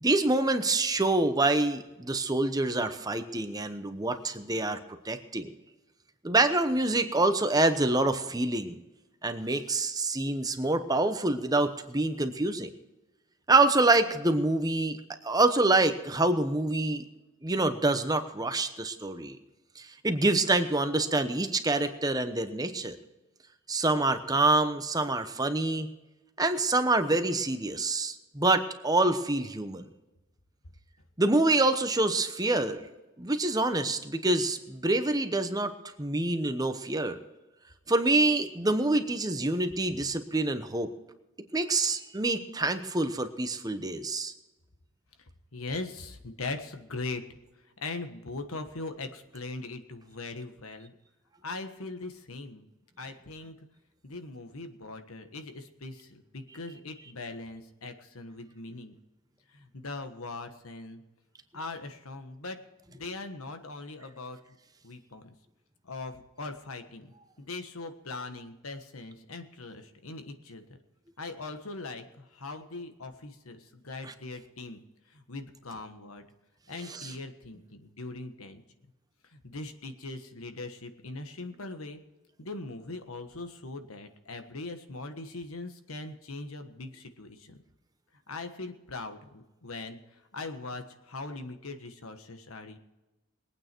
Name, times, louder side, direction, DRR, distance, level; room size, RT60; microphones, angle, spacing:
voice 1, 0.0-4.8 5.0-5.5 6.2-8.8 9.2-12.7 13.5-15.0 15.2-17.0 17.4-19.4 19.8-23.0 23.7-25.9 26.4-29.9 31.2-32.8 33.2-35.7 36.0-37.2 37.9-40.9 41.5-44.3 74.1-74.2 76.9-77.1, right 2 dB, 20° right, 8 dB, 0.9 m, -26 dB
voice 2, 45.5-47.2 47.8-50.9 51.4-52.6 53.0-53.5 54.0-59.0 59.5-61.0 61.5-62.6 62.9-64.4 64.8-65.3 65.8-70.6 71.2-74.8 75.1-76.2 76.7-78.6 79.3-82.0 82.4-87.6 88.3-90.0 90.3-92.8, left 3 dB, 85° left, 7 dB, 1.5 m, -40 dB
22.0 x 9.0 x 4.6 m, 1.0 s
head